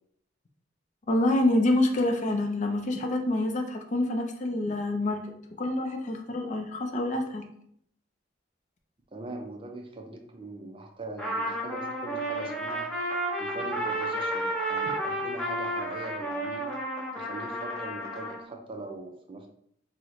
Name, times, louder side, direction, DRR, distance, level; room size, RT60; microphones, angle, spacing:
voice 1, 1.1-5.3 5.6-7.4, left 1 dB, 40° left, 4 dB, 0.4 m, -27 dB
voice 2, 9.1-12.9 13.4-16.7 17.1-19.5, right 2 dB, 30° right, 3 dB, 0.4 m, -41 dB
Trumpet, 11.2-18.4, right 1 dB, 5° left, 0.7 m, -32 dB
3.6 x 2.1 x 2.9 m, 0.66 s
head